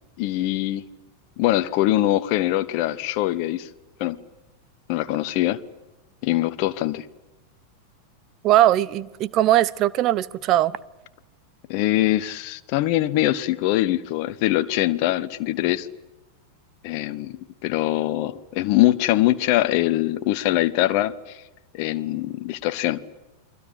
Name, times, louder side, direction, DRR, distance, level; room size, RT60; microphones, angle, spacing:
voice 1, 0.2-0.8 1.4-3.7 4.0-4.2 4.9-5.6 6.2-7.0 11.7-15.9 16.8-21.4 21.7-23.0, left 15 dB, 45° left, 1.1 m, -23 dB
voice 2, 8.4-10.8, right 13 dB, 35° right, 0.9 m, -20 dB
29.5 x 23.0 x 8.3 m
figure-of-eight pair, 90°, 0 cm